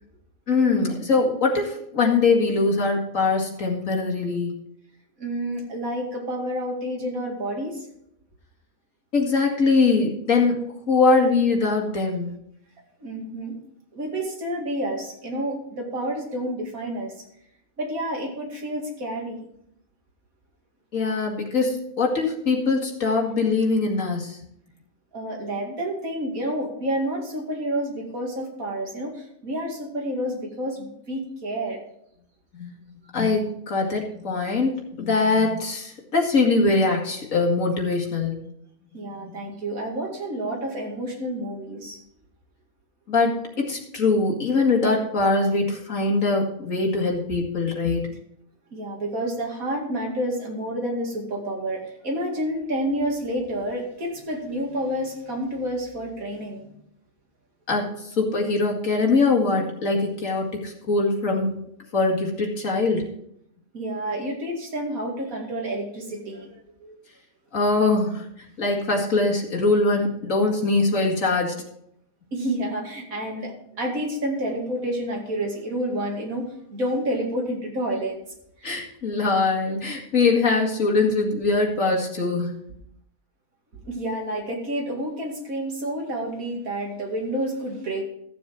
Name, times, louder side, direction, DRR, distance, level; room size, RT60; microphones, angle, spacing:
voice 1, 0.5-4.5 9.1-10.6 10.9-12.3 20.9-24.4 32.5-32.7 33.1-38.4 39.2-39.5 43.1-48.1 57.7-61.6 61.9-63.0 67.5-71.6 78.6-82.5, left 3 dB, 60° left, 0 dB, 2.4 m, -22 dB
voice 2, 5.2-7.9 13.0-13.5 13.9-17.2 17.8-19.5 25.1-31.8 38.9-42.0 48.7-56.7 63.7-66.5 66.8-67.0 72.3-78.2 78.6-78.7 83.8-88.0, right 1 dB, 65° right, 0 dB, 2.8 m, -29 dB
14.5 x 7.2 x 4.5 m, 0.73 s
omnidirectional pair, 1.6 m